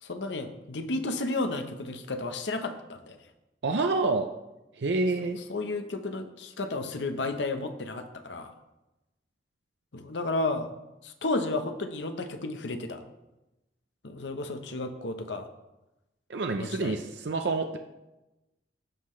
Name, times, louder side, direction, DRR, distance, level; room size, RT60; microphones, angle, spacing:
voice 1, 0.0-3.2 5.5-8.5 9.9-10.7 11.0-13.0 14.0-15.5 16.6-17.0, left 2 dB, 80° left, 7 dB, 0.9 m, -32 dB
voice 2, 3.6-4.3 4.8-5.4 16.3-17.8, right 3 dB, 70° right, 5 dB, 0.5 m, -27 dB
16.0 x 5.7 x 3.2 m, 0.99 s
head